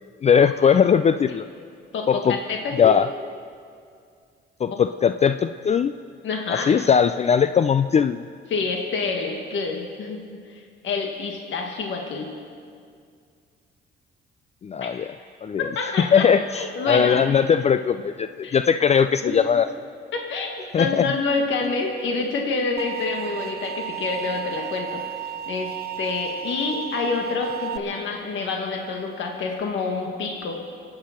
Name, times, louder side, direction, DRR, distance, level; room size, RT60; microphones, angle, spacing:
voice 1, 0.2-1.5 2.1-2.4 2.7-3.1 4.6-5.9 6.5-8.2 14.6-15.1 15.4-15.7 16.0-19.7 20.7-21.0, left 7 dB, 35° left, 11 dB, 0.4 m, -19 dB
voice 2, 1.9-3.0 6.2-6.7 8.5-10.2 10.5-12.3 14.8-14.9 15.7-16.3 16.5-17.2 18.4-18.6 19.2-19.4 20.1-30.5, left 4 dB, 70° left, 1 dB, 1.6 m, -27 dB
sound 1, 22.8-27.8, right 11 dB, 50° right, 0.7 m, -33 dB
26.0 x 8.8 x 5.8 m, 2.2 s
cardioid pair, 90°, 20 cm